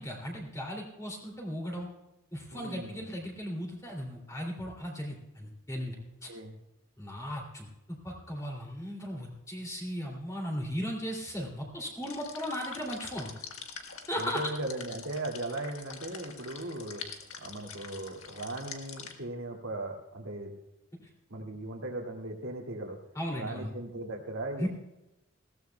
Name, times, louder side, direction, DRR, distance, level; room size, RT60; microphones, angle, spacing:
voice 1, 0.0-1.9 2.3-6.0 6.2-6.3 7.0-13.3 14.1-14.5 21.0-21.1 23.1-23.7 24.6-24.7, equal, 15° left, -1 dB, 2.7 m, -36 dB
voice 2, 2.5-3.1 6.3-6.5 14.2-17.0 17.4-20.5 21.3-23.0 23.3-24.7, right 2 dB, 80° right, 0 dB, 2.4 m, -38 dB
sound 1, 12.0-19.1, left 6 dB, 75° left, 1.5 m, -45 dB
20.5 x 16.5 x 2.3 m, 0.93 s
head